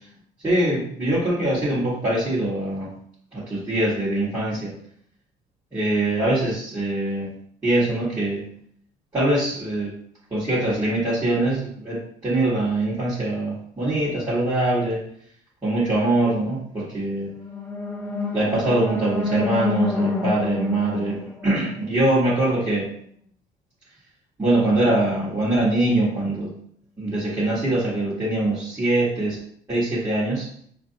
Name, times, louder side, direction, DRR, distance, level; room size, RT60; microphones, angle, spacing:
voice 1, 0.4-2.9 3.3-4.7 5.7-7.3 7.6-8.4 9.1-9.9 10.3-15.0 15.6-17.3 18.3-21.2 21.4-22.9 24.4-26.5 27.0-29.4 29.7-30.5, right 1 dB, 15° right, -10 dB, 1.4 m, -23 dB
sound 1, 17.3-22.4, left 3 dB, 10° left, 0.6 m, -28 dB
4.5 x 2.6 x 2.7 m, 0.64 s
cardioid pair, 110°, 17 cm